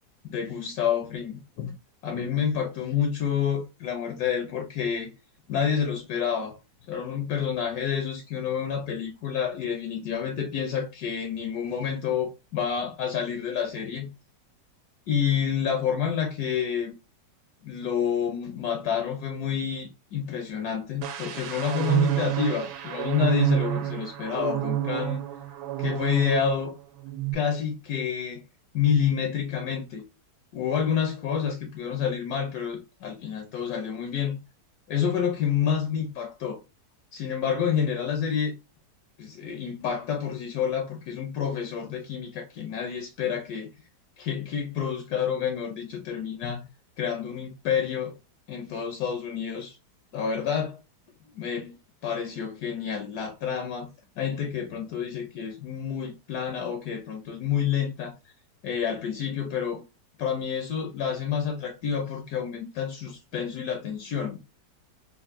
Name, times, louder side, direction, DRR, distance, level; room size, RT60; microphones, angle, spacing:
voice 1, 0.3-1.7 2.0-5.1 5.5-6.6 6.9-14.1 15.1-16.9 17.6-25.2 25.8-26.7 27.3-28.4 28.7-30.0 30.5-34.4 34.9-36.6 37.1-38.5 39.2-43.7 44.2-46.7 47.0-48.1 48.5-49.8 50.1-50.8 51.4-51.8 52.0-53.9 54.2-58.1 58.6-59.8 60.2-64.4, left 7 dB, 70° left, 1.0 m, -28 dB
sound 1, 21.0-26.7 27.0-27.3, right 14 dB, 75° right, 1.1 m, -28 dB
3.4 x 2.4 x 2.4 m
omnidirectional pair, 1.9 m